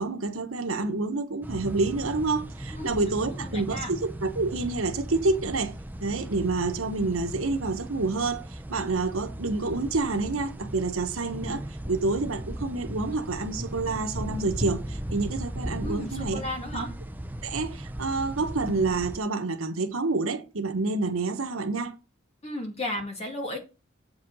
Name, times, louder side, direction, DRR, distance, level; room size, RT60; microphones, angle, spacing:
voice 1, 0.0-5.7 6.0-16.4 16.7-16.9 17.4-21.9, right 3 dB, 85° right, 1.1 m, -28 dB
sound 1, 1.4-19.2, equal, 10° right, 0.5 m, -37 dB
voice 2, 2.7-3.9 15.8-16.9 22.4-23.6, left 1 dB, 30° left, 2.3 m, -35 dB
7.6 x 5.0 x 5.4 m
head